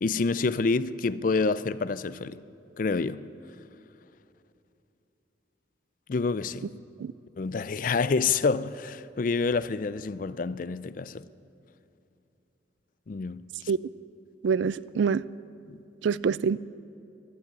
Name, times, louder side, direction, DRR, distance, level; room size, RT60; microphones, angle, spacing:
voice 1, 0.0-2.4 2.8-3.2 6.1-6.7 7.4-11.2 13.1-13.7 15.7-15.8, left 4 dB, 45° left, 0.4 m, -28 dB
voice 2, 14.4-15.3 16.0-16.6, right 6 dB, 75° right, 0.3 m, -25 dB
12.0 x 12.0 x 9.2 m
head